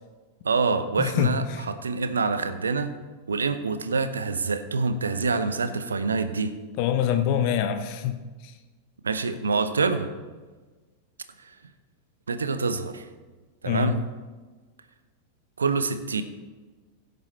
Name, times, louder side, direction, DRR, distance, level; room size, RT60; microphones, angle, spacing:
voice 1, 0.4-2.9 3.3-6.5 9.0-10.1 12.3-13.0 13.6-14.0 15.6-16.2, right 4 dB, 75° right, 11 dB, 0.7 m, -26 dB
voice 2, 1.0-1.6 6.8-8.2 13.6-13.9, left 9 dB, 45° left, 8 dB, 0.8 m, -25 dB
15.5 x 8.0 x 3.3 m, 1.3 s
figure-of-eight pair, 90°, 0 cm